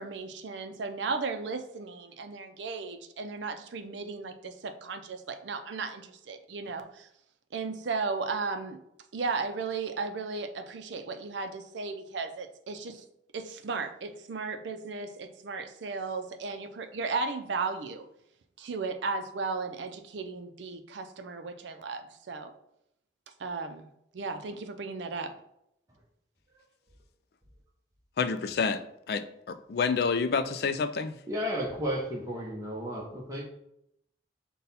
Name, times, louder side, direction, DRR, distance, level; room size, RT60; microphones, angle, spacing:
voice 1, 0.0-7.1 7.5-8.8 9.1-13.0 13.3-18.0 18.6-22.5 23.4-23.9 24.1-25.3, right 4 dB, 75° right, 7 dB, 0.5 m, -35 dB
voice 2, 28.2-28.8 29.1-31.2, left 5 dB, 55° left, 11 dB, 0.3 m, -28 dB
voice 3, 31.3-33.4, equal, 20° right, -3 dB, 0.7 m, -33 dB
5.4 x 2.2 x 4.1 m, 0.79 s
head